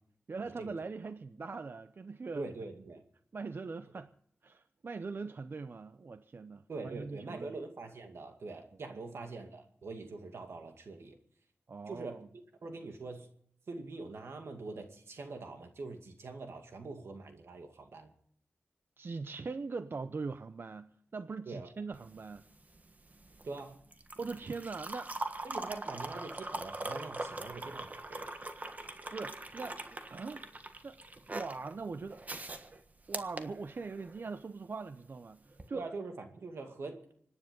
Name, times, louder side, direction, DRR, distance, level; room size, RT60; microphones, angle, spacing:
voice 1, 0.3-2.5 3.3-4.1 4.4-7.5 8.9-9.0 11.7-12.3 19.0-22.4 24.2-25.1 29.1-30.5 30.8-31.0 31.3-32.2 33.1-35.8, right 4 dB, 60° right, 11 dB, 0.6 m, -41 dB
voice 2, 2.3-3.0 6.7-11.2 11.9-12.2 12.6-13.3 13.7-18.1 21.5-21.7 23.4-23.8 25.4-28.3 35.7-37.1, right 3 dB, 85° right, 5 dB, 2.2 m, -44 dB
sound 1, 21.9-34.2 35.5-35.7, right 2 dB, 40° right, 1.5 m, -42 dB
25.5 x 10.0 x 5.3 m, 0.63 s
wide cardioid pair, 65°, 4 cm